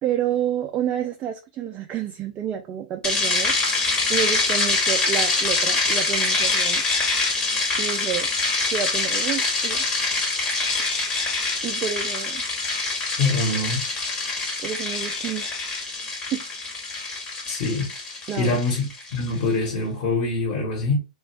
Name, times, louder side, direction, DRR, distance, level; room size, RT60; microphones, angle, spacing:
voice 1, 0.0-3.6 4.1-6.8 7.8-8.3 8.7-9.9 11.6-12.4 14.6-15.7 16.3-16.4 18.3-18.6, right 9 dB, 25° right, 0.4 m, -29 dB
sound 1, 3.0-19.3, left 3 dB, 20° left, 1.0 m, -25 dB
voice 2, 13.2-13.8 17.5-17.9 18.4-21.0, left 3 dB, 45° left, 1.3 m, -24 dB
2.4 x 2.3 x 3.2 m
figure-of-eight pair, 105°, 4 cm